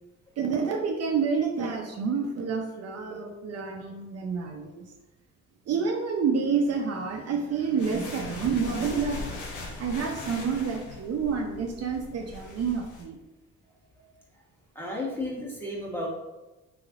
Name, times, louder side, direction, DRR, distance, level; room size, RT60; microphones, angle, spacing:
voice 1, 0.4-4.9 5.7-9.4 9.8-13.2, right 5 dB, 55° right, 2 dB, 0.5 m, -28 dB
sound 1, 7.8-13.0, left 2 dB, 80° left, 0.8 m, -40 dB
voice 2, 14.7-16.1, left 1 dB, 5° left, -4 dB, 1.1 m, -33 dB
3.7 x 3.1 x 2.4 m, 1.1 s
cardioid pair, 90°, 30 cm